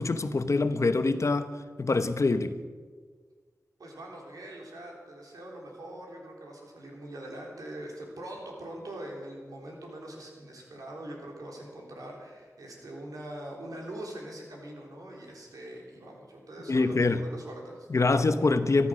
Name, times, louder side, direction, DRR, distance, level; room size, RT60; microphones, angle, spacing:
voice 1, 0.0-1.5 1.8-2.6 16.7-17.2 17.9-18.9, left 3 dB, 55° left, 0.9 m, -25 dB
voice 2, 3.8-18.2, right 1 dB, 90° right, 3.6 m, -43 dB
14.0 x 14.0 x 6.3 m
cardioid pair, 50°, 6 cm